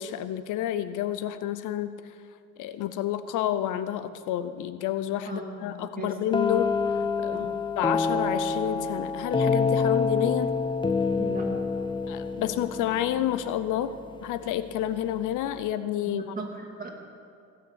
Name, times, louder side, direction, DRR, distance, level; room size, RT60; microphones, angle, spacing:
voice 1, 0.0-2.0 2.6-7.5 7.8-10.5 12.1-16.2, left 11 dB, 90° left, 13 dB, 0.6 m, -30 dB
voice 2, 5.3-6.2 6.4-6.6 7.3-7.5 11.2-11.5 16.1-16.9, right 3 dB, 30° right, 0 dB, 2.8 m, -38 dB
sound 1, 6.3-14.0, left 4 dB, 15° left, 0.6 m, -27 dB
16.5 x 6.5 x 8.3 m, 2.4 s
cardioid pair, 90°, 30 cm